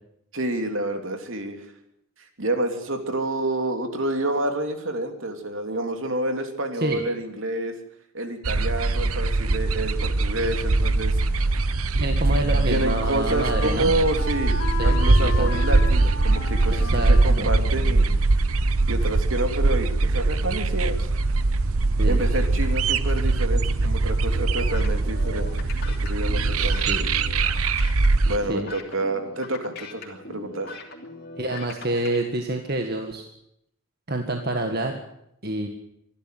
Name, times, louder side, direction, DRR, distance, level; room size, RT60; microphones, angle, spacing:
voice 1, 0.3-1.6 2.4-7.7 8.1-11.2 12.7-18.0 18.9-21.1 22.1-26.9 28.3-30.8, right 1 dB, 65° right, 5 dB, 3.2 m, -28 dB
sound 1, 8.4-28.4, right 3 dB, 85° right, 1.0 m, -22 dB
Wind instrument woodwind instrument, 11.9-18.8, left 3 dB, 75° left, 3.5 m, -36 dB
voice 2, 12.0-14.0 14.8-15.0 15.2-15.5 16.7-17.5 22.0-22.2 26.6-27.1 28.5-28.7 31.4-33.2 34.1-35.0 35.4-35.7, right 1 dB, 45° right, 4 dB, 1.8 m, -28 dB
sound 2, 24.3-32.2, left 3 dB, 45° left, 3.0 m, -40 dB
25.5 x 12.0 x 9.3 m, 0.76 s
head